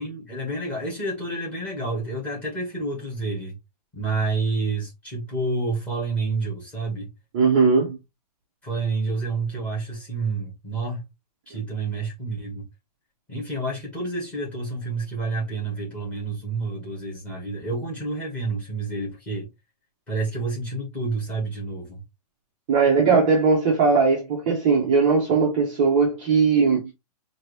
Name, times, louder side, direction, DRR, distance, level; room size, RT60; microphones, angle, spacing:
voice 1, 0.0-3.6 3.9-7.1 8.6-11.0 11.5-12.6 13.3-19.5 20.1-22.0, right 3 dB, 5° left, 1.3 m, -29 dB
voice 2, 7.3-8.0 11.5-11.6 22.7-26.9, right 4 dB, 15° right, 0.6 m, -19 dB
4.5 x 2.6 x 3.2 m
hypercardioid pair, 180°, 20 cm